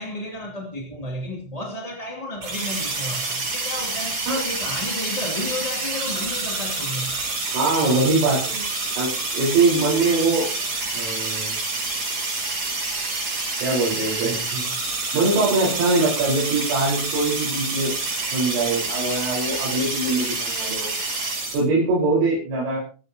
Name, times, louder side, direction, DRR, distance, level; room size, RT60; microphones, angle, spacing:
voice 1, 0.0-7.2, left 1 dB, 15° left, 1.6 m, -32 dB
sound 1, 2.4-21.6, right 3 dB, 45° right, 7.5 m, -28 dB
voice 2, 7.5-8.6 9.0-10.5 10.9-11.5 13.6-14.7 15.1-17.9 18.3-20.9 21.5-22.8, right 3 dB, 85° right, 7.6 m, -22 dB
27.5 x 9.8 x 3.0 m
omnidirectional pair, 5.8 m